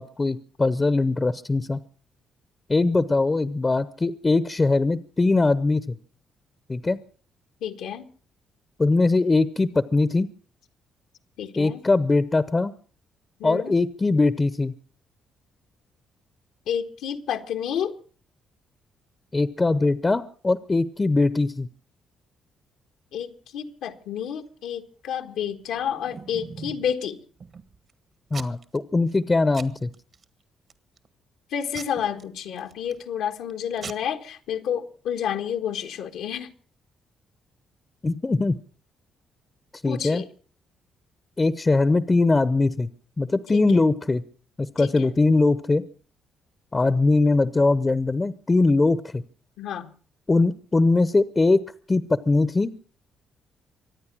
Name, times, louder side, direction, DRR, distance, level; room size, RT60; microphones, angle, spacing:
voice 1, 0.0-1.8 2.7-6.0 6.7-7.0 8.8-10.3 11.6-12.7 13.4-14.7 19.3-21.7 28.3-29.9 38.0-38.6 39.8-40.2 41.4-42.9 43.2-44.2 44.6-45.8 46.7-49.2 50.3-51.6 51.9-52.7, left 3 dB, 25° left, 0.8 m, -21 dB
voice 2, 7.6-8.0 11.4-11.8 13.4-13.8 16.7-17.9 23.1-27.2 31.5-36.5 39.8-40.3 43.5-43.8 44.8-45.1 49.6-49.9, left 8 dB, 85° left, 1.5 m, -30 dB
Packing tape duct tape / Tearing, 25.6-26.9 27.4-27.9 28.3-28.8 29.1-29.3 29.5-30.2 30.7-31.1 31.7-33.0 33.5-33.6 33.8-33.9, right 5 dB, 50° right, 1.5 m, -41 dB
25.0 x 9.4 x 6.1 m
cardioid pair, 90°, 0 cm